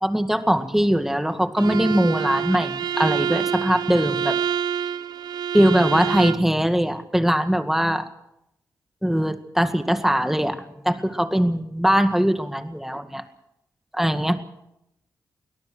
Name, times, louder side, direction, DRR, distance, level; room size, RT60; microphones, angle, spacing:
voice 1, 0.0-4.4 5.5-8.1 9.0-13.2 13.9-14.4, equal, 5° right, 8 dB, 1.9 m, -21 dB
Bowed string instrument, 1.6-6.5, right 8 dB, 80° right, 0.7 m, -27 dB
23.0 x 18.0 x 6.3 m, 0.83 s
cardioid pair, 70°, 7 cm